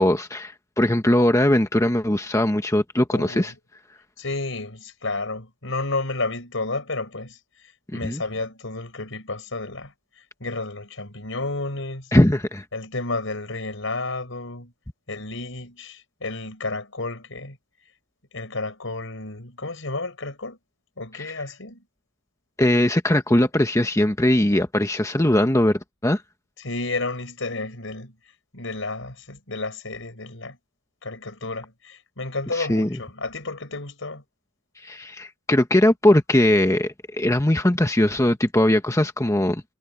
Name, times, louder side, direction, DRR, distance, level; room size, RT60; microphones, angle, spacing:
voice 1, 0.0-3.5 8.0-8.2 12.1-12.6 22.6-26.2 32.6-32.9 34.8-39.6, left 1 dB, 15° left, 1.2 m, -20 dB
voice 2, 3.1-3.5 4.2-9.9 10.4-12.1 12.7-14.7 15.1-17.6 18.3-20.6 21.0-21.8 26.6-28.2 28.5-30.6 31.0-34.2, left 3 dB, 75° left, 4.6 m, -31 dB
head